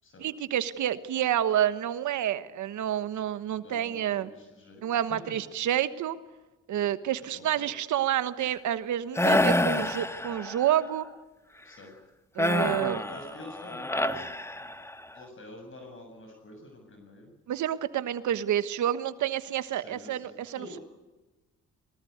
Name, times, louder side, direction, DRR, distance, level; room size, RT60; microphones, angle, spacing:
voice 1, 0.2-4.3 4.8-6.2 6.7-11.1 12.3-13.1 17.5-20.8, right 11 dB, 75° right, 13 dB, 1.3 m, -29 dB
voice 2, 3.6-5.2 7.2-7.8 11.6-12.0 13.1-14.3 15.1-17.4 19.7-20.8, left 2 dB, 40° left, 3 dB, 7.0 m, -47 dB
sound 1, 9.2-10.7 12.4-15.0, left 1 dB, 10° left, 1.5 m, -27 dB
23.0 x 20.5 x 9.4 m, 1.1 s
cardioid pair, 90°, 30 cm